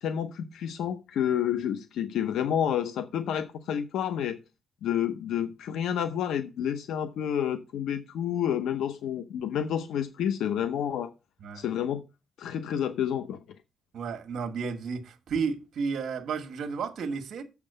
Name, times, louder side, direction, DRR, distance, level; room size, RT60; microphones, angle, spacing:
voice 1, 0.0-4.4 4.8-11.1 11.5-12.0 12.4-13.4, left 9 dB, 90° left, 0.7 m, -29 dB
voice 2, 13.9-17.4, right 5 dB, 70° right, 1.2 m, -32 dB
7.2 x 5.9 x 6.6 m
cardioid pair, 100°, 0 cm